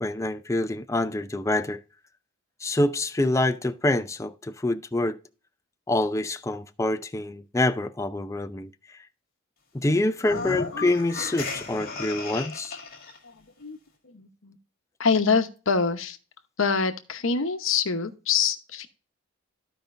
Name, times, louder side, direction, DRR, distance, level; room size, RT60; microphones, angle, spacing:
voice 1, 0.0-1.8 2.6-5.2 5.9-8.7 9.7-12.8, left 2 dB, 15° left, 0.4 m, -26 dB
sound 1, 10.2-13.2, left 3 dB, 50° left, 2.0 m, -34 dB
voice 2, 14.0-14.6 15.0-16.2 16.6-18.9, left 5 dB, 65° left, 0.9 m, -25 dB
14.5 x 5.1 x 2.5 m
head